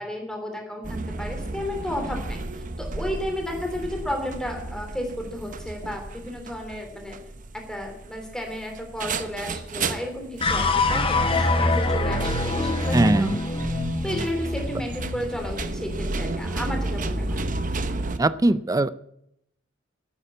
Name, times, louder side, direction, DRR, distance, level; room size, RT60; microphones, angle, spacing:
voice 1, 0.0-7.2 7.5-13.4 14.0-17.4 18.4-18.6, left 1 dB, 5° left, 2 dB, 3.2 m, -33 dB
sound 1, 0.8-18.2, right 2 dB, 45° right, 0.9 m, -33 dB
sound 2, 10.4-16.8, left 2 dB, 30° left, 1.3 m, -25 dB
voice 2, 12.9-13.4 18.2-18.9, right 2 dB, 20° right, 16 dB, 0.4 m, -20 dB
11.5 x 8.9 x 8.5 m, 0.78 s
head